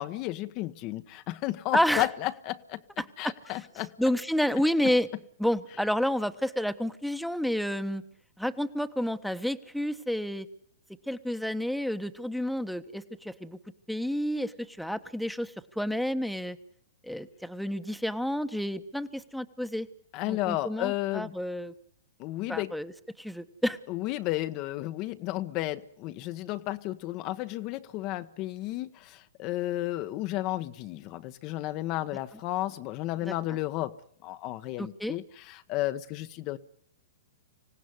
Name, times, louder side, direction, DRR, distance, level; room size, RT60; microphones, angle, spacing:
voice 1, 0.0-2.8 3.2-3.9 20.1-21.3 22.2-22.7 23.9-36.6, left 16 dB, 40° left, 10 dB, 1.1 m, -33 dB
voice 2, 1.7-2.1 3.0-3.1 4.0-5.1 5.4-8.0 8.4-10.5 11.1-13.6 13.9-16.6 17.0-19.9 20.3-21.7 22.5-22.9 23.2-23.8 33.2-33.3 34.8-35.2, equal, ahead, 10 dB, 1.2 m, -30 dB
25.5 x 17.0 x 9.8 m, 0.67 s
hypercardioid pair, 120°, 0 cm